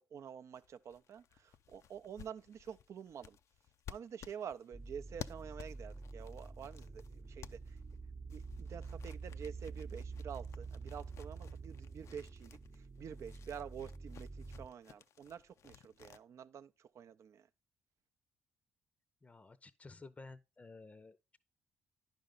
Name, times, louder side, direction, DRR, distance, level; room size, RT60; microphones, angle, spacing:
voice 1, 0.0-3.4 3.9-7.8 8.3-17.5, right 8 dB, 60° right, 0.5 m, -48 dB
sound 1, 0.5-8.0 8.3-16.2, left 9 dB, 60° left, 0.4 m, -55 dB
sound 2, 4.7-14.7, right 4 dB, 35° right, 0.8 m, -48 dB
voice 2, 19.2-21.4, left 3 dB, 25° left, 0.6 m, -54 dB
10.0 x 5.3 x 3.8 m
hypercardioid pair, 50°, 6 cm